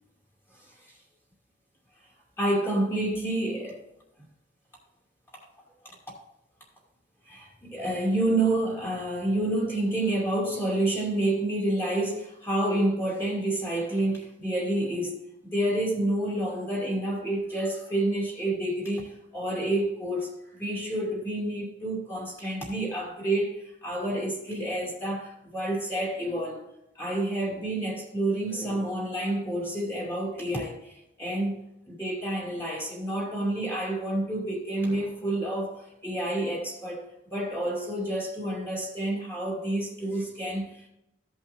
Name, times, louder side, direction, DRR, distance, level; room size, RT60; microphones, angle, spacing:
voice 1, 0.5-1.0 2.4-3.8 5.3-5.4 5.8-6.0 7.3-26.6 26.9-31.6 31.9-40.9, right 1 dB, 15° left, 2.5 m, -29 dB
15.0 x 5.5 x 3.0 m
head